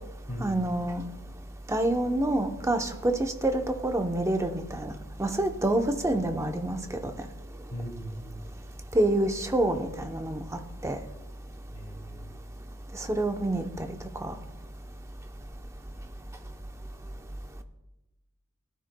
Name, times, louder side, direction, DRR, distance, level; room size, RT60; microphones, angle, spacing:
voice 1, 0.4-1.0 1.7-4.9 5.2-7.1 8.9-10.4 10.8-11.0 12.9-14.0 14.2-14.3, right 1 dB, 15° right, 5 dB, 0.7 m, -27 dB
voice 2, 7.7-8.4 11.7-12.4, equal, 30° left, -4 dB, 3.0 m, -39 dB
17.5 x 12.5 x 2.2 m, 1.0 s
head